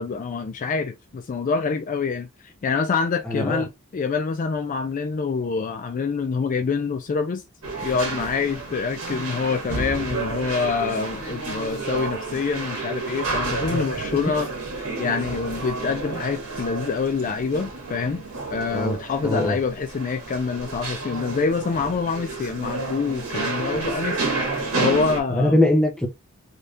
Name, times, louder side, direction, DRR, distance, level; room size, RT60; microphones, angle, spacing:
voice 1, 0.0-7.4 7.8-14.5 15.0-18.2 18.5-24.2 24.8-25.6, left 5 dB, 40° left, 0.3 m, -26 dB
voice 2, 3.3-3.6 13.7-13.9 18.7-19.0 19.2-19.6 25.3-26.1, left 1 dB, 5° left, 0.8 m, -21 dB
sound 1, 7.6-25.2, right 3 dB, 80° right, 1.4 m, -30 dB
3.4 x 2.8 x 2.4 m
head